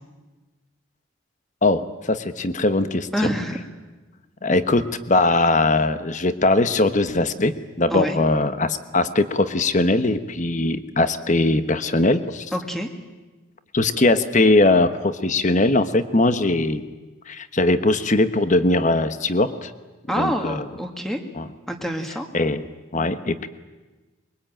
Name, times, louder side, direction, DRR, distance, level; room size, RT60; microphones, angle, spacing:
voice 1, 1.6-3.1 4.4-7.5 7.8-12.5 13.7-16.8 17.3-19.7 20.2-20.6 21.4-21.5 22.3-22.6 22.9-23.5, left 2 dB, 35° left, 11 dB, 1.1 m, -20 dB
voice 2, 3.1-3.6 7.9-8.2 12.5-12.9 20.1-21.2 21.7-22.3, equal, ahead, 4 dB, 1.9 m, -26 dB
23.0 x 22.5 x 9.0 m, 1.2 s
head